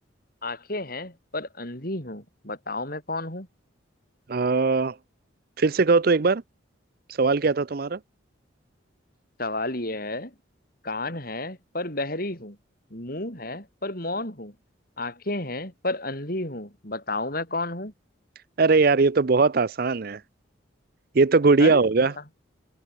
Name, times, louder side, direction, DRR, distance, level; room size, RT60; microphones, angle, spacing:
voice 1, 0.4-3.5 9.4-10.3 10.8-12.6 12.9-14.5 15.0-17.9 21.6-21.8, left 2 dB, 50° left, 6.8 m, -31 dB
voice 2, 4.3-5.0 5.6-6.4 7.2-8.0 18.6-20.2 21.1-22.1, right 4 dB, 50° right, 0.5 m, -20 dB
head